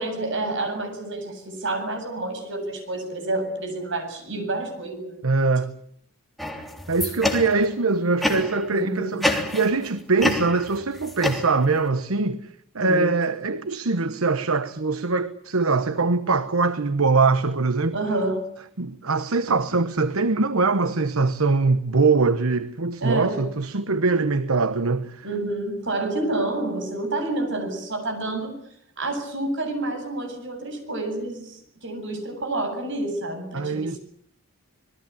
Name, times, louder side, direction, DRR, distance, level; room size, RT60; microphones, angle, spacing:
voice 1, 0.0-5.2 8.7-9.4 12.8-13.1 17.9-18.5 23.0-23.4 25.2-28.6 29.0-34.0, right 2 dB, 60° right, 7.8 m, -29 dB
voice 2, 5.2-5.7 6.9-18.0 18.8-25.3 33.5-34.0, right 3 dB, 75° right, 1.1 m, -22 dB
sound 1, 6.4-7.7 8.2-8.7 9.2-9.9 10.2-11.9, left 1 dB, ahead, 3.3 m, -27 dB
27.0 x 20.5 x 8.6 m
head